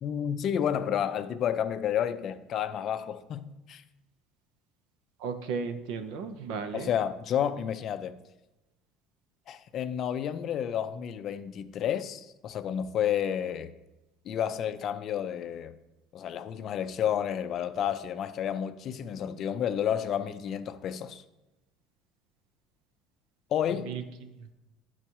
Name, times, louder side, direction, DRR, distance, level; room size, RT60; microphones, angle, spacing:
voice 1, 0.0-3.8 6.7-8.2 9.5-13.7 14.3-15.7 16.1-21.2 23.5-23.9, left 9 dB, 45° left, 0.4 m, -30 dB
voice 2, 5.2-6.9 23.8-24.0, right 5 dB, 75° right, 0.8 m, -34 dB
9.7 x 4.0 x 4.6 m
cardioid pair, 140°, 0 cm